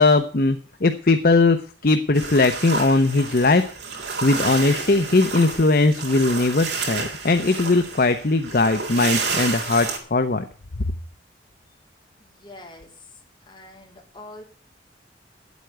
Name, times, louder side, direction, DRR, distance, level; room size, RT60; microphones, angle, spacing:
voice 1, 0.0-3.7 4.2-10.5, left 3 dB, 55° left, 8 dB, 0.8 m, -19 dB
sound 1, 2.1-10.0, right 4 dB, 75° right, 3.9 m, -30 dB
voice 2, 12.2-13.1 13.5-14.4, left 2 dB, 25° left, 0 dB, 3.3 m, -44 dB
10.5 x 8.2 x 8.0 m, 0.41 s
head